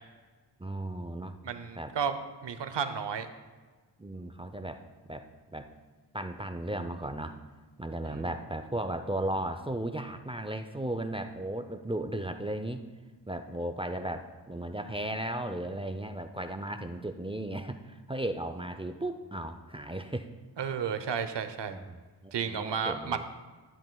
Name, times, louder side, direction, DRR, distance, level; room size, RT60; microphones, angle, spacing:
voice 1, 0.6-1.4 1.8-1.9 4.0-4.8 5.1-5.7 6.1-7.4 7.8-12.8 13.3-20.3 21.7-23.2, right 1 dB, 15° right, 7 dB, 0.5 m, -35 dB
voice 2, 1.4-2.2 2.4-3.3 8.0-8.2 20.6-21.8 22.3-23.2, right 7 dB, 70° right, 10 dB, 0.8 m, -32 dB
12.5 x 7.6 x 2.3 m, 1.3 s
cardioid pair, 45°, 44 cm